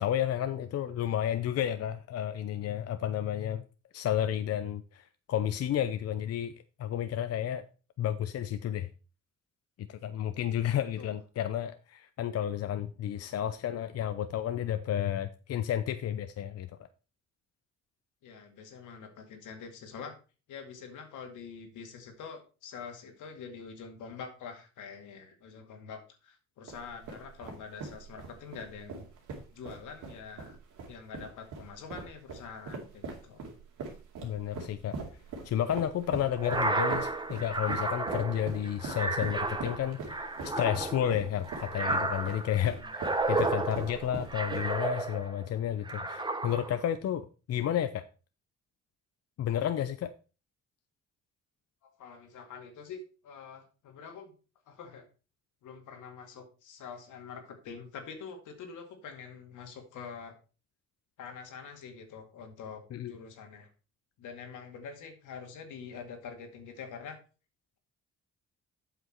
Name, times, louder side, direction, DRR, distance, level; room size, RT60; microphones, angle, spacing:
voice 1, 0.0-3.6 3.9-6.5 6.8-7.6 8.0-8.9 9.8-16.7 34.2-35.0 35.4-48.0 49.4-50.1 62.9-63.1, left 10 dB, 55° left, 0.6 m, -31 dB
voice 2, 18.2-20.1 20.5-29.0 29.5-30.6 30.9-33.4 42.8-42.9 51.8-54.3 54.7-55.1 55.6-60.4 61.2-62.8 63.1-63.7 64.2-67.2, left 6 dB, 80° left, 2.1 m, -45 dB
sound 1, 26.7-45.0, right 4 dB, 85° right, 2.5 m, -42 dB
sound 2, 36.4-45.5 45.9-46.9, right 2 dB, 15° right, 1.1 m, -32 dB
8.0 x 6.0 x 4.4 m
cardioid pair, 90°, 30 cm